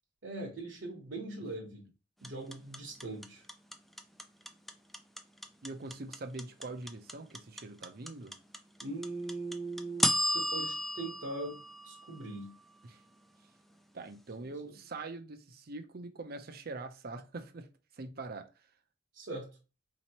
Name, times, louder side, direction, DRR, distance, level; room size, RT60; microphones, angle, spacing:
voice 1, 0.2-1.9 2.2-3.4 8.8-12.5 19.1-19.5, right 2 dB, 70° right, 1.1 m, -41 dB
sound 1, 2.2-12.4, equal, ahead, 0.3 m, -34 dB
voice 2, 5.6-8.3 12.8-13.0 13.9-18.5, right 3 dB, 50° right, 0.6 m, -43 dB
4.3 x 2.9 x 2.9 m
head